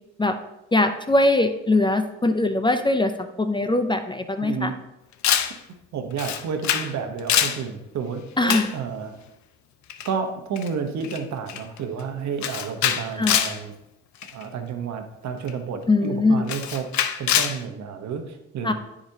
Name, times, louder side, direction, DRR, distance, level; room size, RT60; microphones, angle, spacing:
voice 1, 0.7-4.7 8.4-8.7 13.2-13.4 15.9-16.4 18.6-18.7, left 2 dB, 15° left, 7 dB, 0.5 m, -21 dB
voice 2, 4.4-4.8 5.9-9.1 10.0-13.7 14.3-16.9 17.2-18.7, right 6 dB, 65° right, 6 dB, 1.0 m, -31 dB
Camera, 5.2-5.6 6.2-6.9 7.2-7.6 8.5-8.7 9.9-10.1 10.6-10.7 11.0-11.2 11.5-11.8 12.4-13.6 14.2-14.4 15.5-15.6 16.5-17.6, left 10 dB, 70° left, 0.6 m, -24 dB
10.0 x 5.0 x 2.7 m, 0.92 s
cardioid pair, 90°, 30 cm